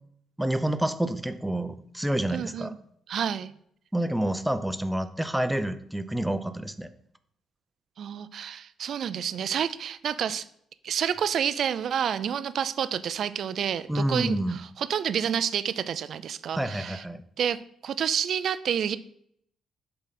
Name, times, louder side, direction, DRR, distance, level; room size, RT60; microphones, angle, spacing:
voice 1, 0.4-2.7 3.9-6.9 13.9-14.5 16.5-17.2, right 1 dB, 5° right, 10 dB, 0.6 m, -28 dB
voice 2, 2.3-2.8 3.1-3.5 8.0-10.4 10.8-17.0 17.4-19.0, right 8 dB, 65° right, 14 dB, 0.4 m, -29 dB
7.2 x 3.9 x 5.8 m, 0.68 s
cardioid pair, 90°, 0 cm